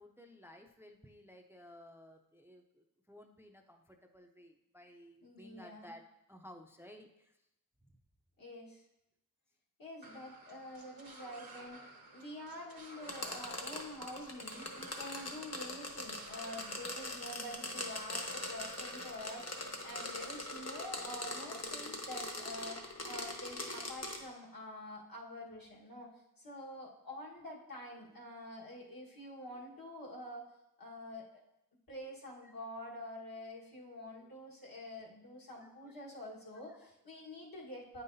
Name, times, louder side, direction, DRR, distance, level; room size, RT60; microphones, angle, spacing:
voice 1, 0.0-6.0 6.3-7.3 14.7-14.8 32.4-32.5 34.2-34.4 35.6-35.9 36.7-36.9, left 1 dB, 5° right, 3 dB, 0.5 m, -56 dB
voice 2, 5.2-5.9 8.4-8.8 9.8-26.1 26.4-30.5 30.8-31.2 31.9-38.0, left 1 dB, 70° left, -4 dB, 1.6 m, -47 dB
sound 1, 10.0-19.2, right 2 dB, 70° right, 1.1 m, -54 dB
sound 2, 13.0-24.2, left 2 dB, 45° left, 1.0 m, -42 dB
8.9 x 5.5 x 2.7 m, 0.87 s
wide cardioid pair, 50°, 36 cm